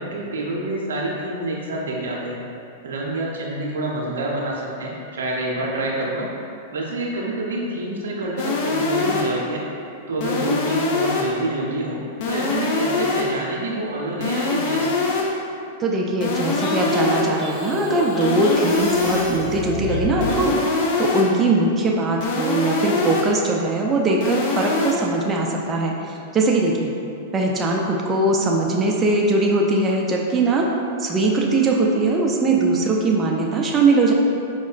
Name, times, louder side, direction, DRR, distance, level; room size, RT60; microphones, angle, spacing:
voice 1, 0.0-2.4 2.8-6.3 6.7-9.6 10.1-15.0, right 2 dB, 80° right, -3 dB, 0.5 m, -27 dB
sound 1, 8.4-9.5 10.2-11.5 12.2-13.5 14.2-15.5 16.2-17.5 18.2-19.5 20.2-21.5 22.2-23.5 24.2-24.9, left 3 dB, 55° left, 0.4 m, -24 dB
voice 2, 15.8-20.5 21.0-26.9 27.3-30.7 31.0-34.1, right 2 dB, 25° right, -1 dB, 0.3 m, -20 dB
sound 2, 16.6-20.5, left 2 dB, 30° left, 1.3 m, -31 dB
4.8 x 2.1 x 2.4 m, 2.6 s
hypercardioid pair, 105°, 0 cm